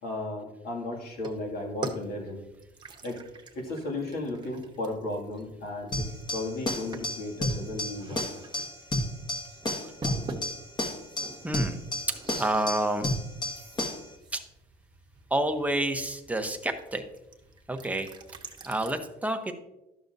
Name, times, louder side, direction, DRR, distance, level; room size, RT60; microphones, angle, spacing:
voice 1, 0.0-2.4 3.0-3.2 3.5-8.3, left 2 dB, 65° left, 0 dB, 2.3 m, -35 dB
sound 1, 1.1-18.9, right 3 dB, 25° right, 1.1 m, -45 dB
sound 2, 5.9-14.1, left 1 dB, 25° left, 1.5 m, -32 dB
voice 2, 11.4-11.8 12.4-13.1 14.3-14.4 15.3-17.0 17.7-18.1 18.7-19.5, right 1 dB, 10° right, 6 dB, 0.8 m, -28 dB
12.0 x 6.8 x 2.6 m, 0.91 s
cardioid pair, 110°, 17 cm